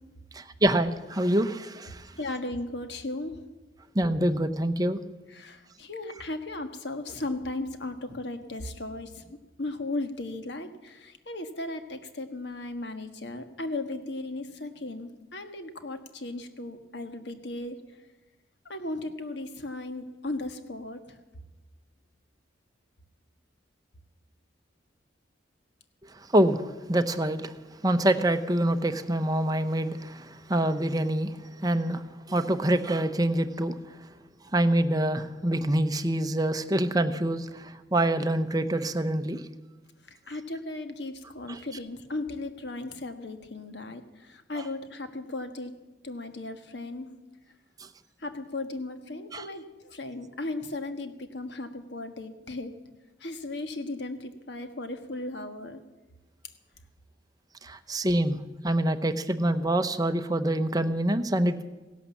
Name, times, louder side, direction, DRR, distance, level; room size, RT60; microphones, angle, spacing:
voice 1, 0.3-2.0 3.9-5.0 26.3-26.6 26.9-27.5 27.8-31.3 31.6-32.0 32.3-33.7 34.5-39.4 41.5-41.6 49.3-49.5 57.6-58.4 58.6-61.6, right 1 dB, 20° right, 8 dB, 0.8 m, -26 dB
voice 2, 2.2-3.4 5.3-17.8 18.7-21.1 40.1-45.7 46.0-47.1 48.2-52.7 53.2-55.8, left 2 dB, 60° left, 8 dB, 1.4 m, -36 dB
16.5 x 11.5 x 7.2 m, 1.2 s
head